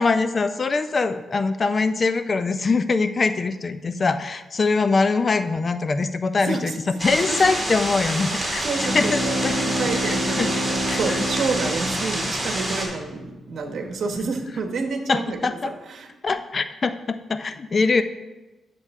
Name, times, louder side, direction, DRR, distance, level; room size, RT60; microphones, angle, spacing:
voice 1, 0.0-6.7 7.0-9.7 10.0-10.5 10.9-11.2 15.1-15.7 16.2-18.0, left 4 dB, 35° left, 11 dB, 0.4 m, -23 dB
voice 2, 6.5-6.8 7.3-7.4 8.6-9.4 9.7-15.4 15.9-16.1, right 4 dB, 60° right, 5 dB, 1.1 m, -28 dB
sound 1, 7.0-12.9, right 1 dB, 10° right, 2.3 m, -27 dB
Bowed string instrument, 8.6-13.3, equal, 10° left, 0.8 m, -29 dB
10.0 x 6.6 x 3.6 m, 1.1 s
cardioid pair, 125°, 0 cm